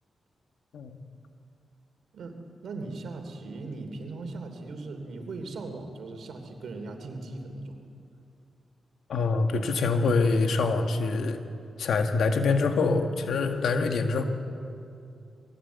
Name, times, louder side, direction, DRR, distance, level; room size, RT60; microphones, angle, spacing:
voice 1, 2.6-7.8, right 3 dB, 80° right, 5 dB, 2.9 m, -38 dB
voice 2, 9.1-11.4 11.8-14.2, left 4 dB, 85° left, 6 dB, 1.6 m, -25 dB
22.0 x 16.5 x 8.2 m, 2.5 s
cardioid pair, 60°, 0 cm